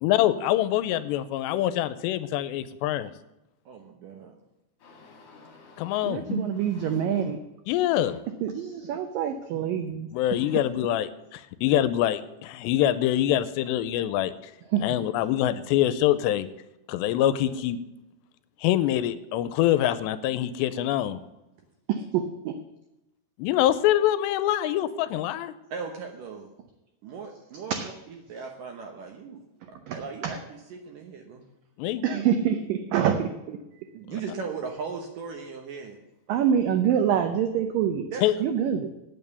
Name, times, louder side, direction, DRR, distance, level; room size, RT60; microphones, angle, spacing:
voice 1, 0.0-3.1 5.8-6.3 7.7-8.2 10.1-14.5 14.8-16.5 16.9-17.8 18.6-21.2 23.4-25.5 31.8-32.0 38.2-38.3, left 12 dB, 85° left, 13 dB, 2.7 m, -25 dB
voice 2, 3.7-4.3 25.7-26.5 27.0-29.4 29.9-31.5 33.7-36.0 36.3-36.4 38.1-38.3, right 5 dB, 65° right, 3 dB, 2.2 m, -38 dB
voice 3, 4.8-7.3 7.9-8.2 10.4-10.7, equal, 45° left, 1 dB, 3.3 m, -40 dB
voice 4, 6.6-7.4 8.4-10.1 14.7-14.9 21.9-22.6 27.7-27.9 29.9-30.3 32.0-33.6 36.3-38.1 38.4-38.9, right 8 dB, 90° right, 8 dB, 1.9 m, -26 dB
8.9 x 8.8 x 8.1 m, 0.94 s
omnidirectional pair, 5.0 m